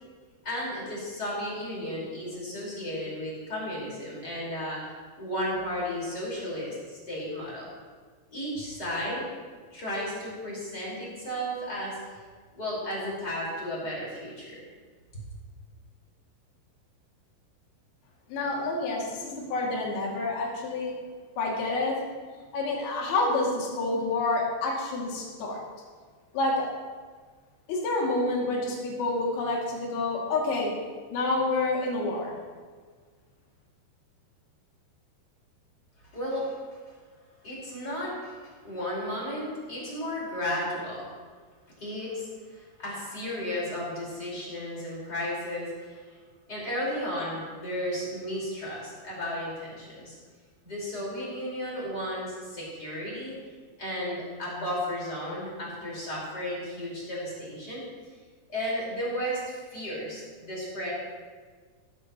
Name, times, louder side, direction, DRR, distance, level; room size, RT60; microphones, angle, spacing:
voice 1, 0.4-4.9 5.2-7.7 8.3-9.3 9.7-12.0 12.5-14.6 15.1-15.2 36.1-36.6 37.4-41.1 41.8-46.2 46.5-50.2 50.6-53.4 53.8-57.8 58.5-60.9, equal, 20° left, -6 dB, 4.9 m, -34 dB
voice 2, 18.3-20.9 21.4-22.0 22.5-25.6 26.3-26.7 27.7-30.7 31.1-32.4, left 2 dB, 65° left, -3 dB, 4.2 m, -28 dB
17.0 x 14.0 x 3.0 m, 1.5 s
omnidirectional pair, 4.9 m